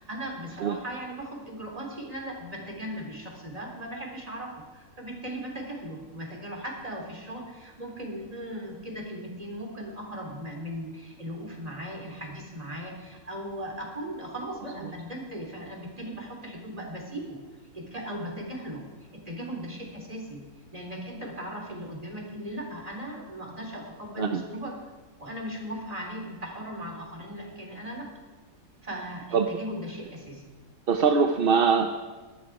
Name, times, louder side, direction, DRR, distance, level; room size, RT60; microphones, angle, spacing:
voice 1, 0.0-17.4 17.7-18.8 19.1-20.4 20.7-24.7 25.2-28.1 28.8-30.5, equal, 25° right, 0 dB, 3.7 m, -38 dB
voice 2, 30.9-32.0, right 5 dB, 50° right, 5 dB, 0.8 m, -23 dB
20.5 x 13.0 x 4.9 m, 1.3 s
omnidirectional pair, 1.5 m